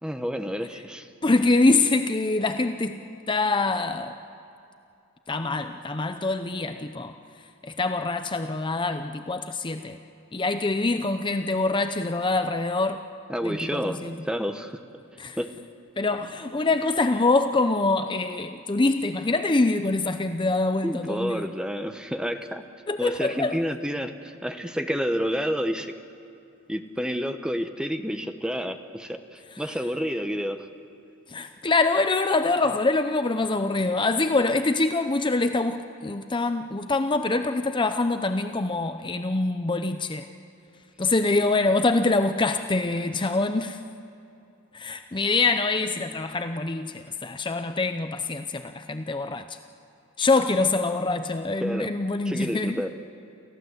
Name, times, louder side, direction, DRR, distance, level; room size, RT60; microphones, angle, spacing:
voice 1, 0.0-1.1 13.3-14.0 14.3-14.8 15.4-15.5 20.8-22.6 23.0-25.9 26.7-30.6 51.6-51.9 52.3-52.9, equal, 5° right, 7 dB, 1.0 m, -29 dB
voice 2, 1.2-4.2 5.3-7.2 7.6-10.0 10.3-13.0 13.4-14.2 15.2-15.4 16.0-21.5 22.9-23.6 29.5-29.6 31.3-40.3 41.0-43.8 44.7-49.6 50.2-52.8, left 3 dB, 25° left, 8 dB, 0.6 m, -25 dB
29.0 x 15.0 x 8.0 m, 2.6 s
head